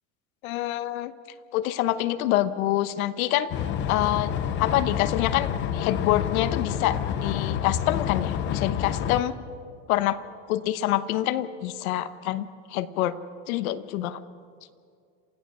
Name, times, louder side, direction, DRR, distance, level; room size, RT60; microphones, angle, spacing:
voice 1, 0.4-1.1 1.5-3.5 3.9-4.3 4.6-9.3 9.9-10.2 10.5-13.1 13.5-14.2, left 13 dB, 85° left, 13 dB, 1.1 m, -26 dB
sound 1, 3.5-9.2, left 9 dB, 30° left, 0.7 m, -28 dB
27.5 x 16.0 x 6.3 m, 2.3 s
cardioid pair, 175°, 41 cm